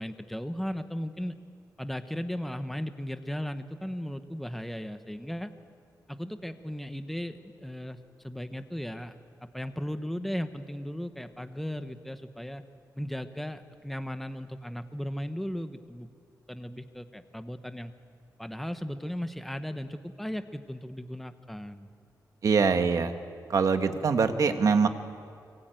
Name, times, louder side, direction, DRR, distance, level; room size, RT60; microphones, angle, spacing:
voice 1, 0.0-1.3 1.8-5.5 6.1-8.0 8.2-9.2 9.4-12.6 13.0-16.1 16.5-17.9 18.4-21.9, equal, ahead, 9 dB, 1.0 m, -36 dB
voice 2, 22.4-23.1 23.5-24.9, right 5 dB, 55° right, 7 dB, 1.6 m, -23 dB
25.0 x 24.0 x 9.2 m, 2.3 s
wide cardioid pair, 150°, 7 cm